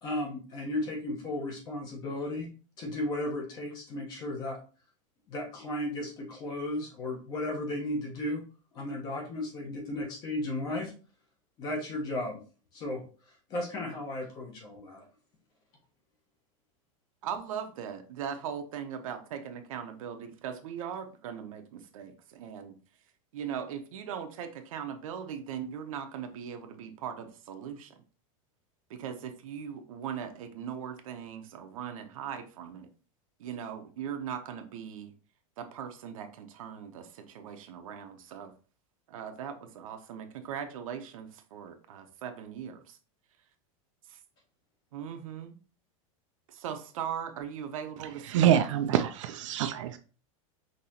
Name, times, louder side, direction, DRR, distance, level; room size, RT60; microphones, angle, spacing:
voice 1, 0.0-2.5 2.8-4.6 5.3-8.4 8.7-10.9 11.6-12.4 12.7-15.1, left 1 dB, 25° left, 1.0 m, -35 dB
voice 2, 17.2-22.7 23.3-27.9 28.9-32.9 33.4-35.1 35.6-38.5 39.1-43.0 44.1-44.2 44.9-45.6 46.5-48.6, right 8 dB, 80° right, 0.8 m, -39 dB
voice 3, 48.3-50.0, right 10 dB, 65° right, 0.5 m, -25 dB
5.5 x 3.0 x 2.8 m
supercardioid pair, 175°, 17 cm